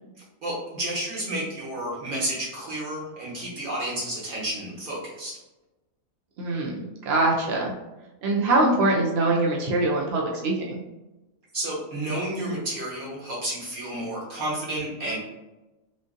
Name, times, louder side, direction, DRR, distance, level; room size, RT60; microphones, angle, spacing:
voice 1, 0.4-5.4 11.5-15.2, right 1 dB, 35° right, -6 dB, 1.2 m, -31 dB
voice 2, 6.4-7.7 8.2-10.8, right 2 dB, 80° right, -2 dB, 0.5 m, -23 dB
3.6 x 2.5 x 2.5 m, 1.0 s
omnidirectional pair, 1.7 m